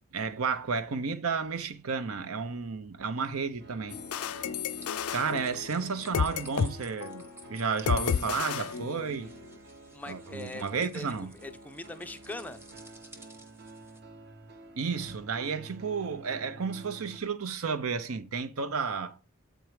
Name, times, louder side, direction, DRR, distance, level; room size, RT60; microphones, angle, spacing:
voice 1, 0.1-4.0 5.1-9.3 10.1-11.3 14.8-19.2, right 5 dB, 80° right, 0.7 m, -32 dB
sound 1, 3.6-17.2, right 2 dB, 50° right, 0.8 m, -50 dB
sound 2, 3.9-6.8 7.0-7.3 7.9-9.4, left 7 dB, 85° left, 0.4 m, -32 dB
sound 3, 4.7-14.0, right 2 dB, 10° right, 0.8 m, -54 dB
voice 2, 9.9-12.6, left 2 dB, 5° left, 0.4 m, -42 dB
7.9 x 4.6 x 4.8 m
head